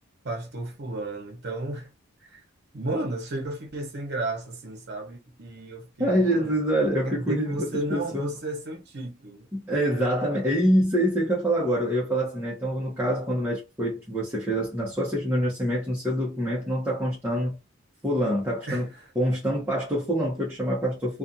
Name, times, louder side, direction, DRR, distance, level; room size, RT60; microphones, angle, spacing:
voice 1, 0.2-1.9 2.3-2.4 2.7-6.6 7.1-9.5 18.7-18.8, right 2 dB, 55° right, 0.9 m, -33 dB
voice 2, 6.0-8.3 9.5-17.6 18.0-18.9 19.1-21.2, equal, 10° right, 0.8 m, -25 dB
2.4 x 2.4 x 2.6 m
head